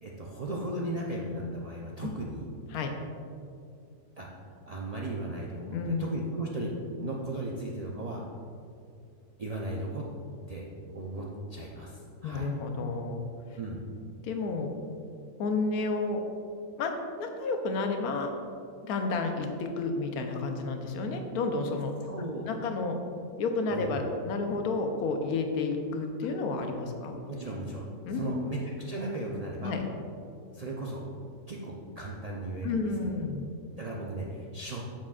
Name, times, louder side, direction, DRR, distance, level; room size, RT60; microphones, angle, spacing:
voice 1, 0.0-2.5 4.2-4.3 4.7-8.2 9.4-10.1 10.5-10.7 10.9-12.5 13.5-13.8 22.1-22.5 23.7-23.9 27.3-27.8 28.1-29.7 30.5-31.0 31.5-32.8 33.8-34.9, right 1 dB, 75° right, -3 dB, 0.3 m, -36 dB
voice 2, 5.6-6.1 12.2-13.3 14.2-14.7 15.4-16.2 16.8-18.3 18.8-21.9 22.5-23.0 23.4-27.2 28.1-28.5 29.6-29.8 32.6-33.5, left 3 dB, 80° left, 4 dB, 1.2 m, -31 dB
8.6 x 7.3 x 2.4 m, 2.4 s
omnidirectional pair, 1.6 m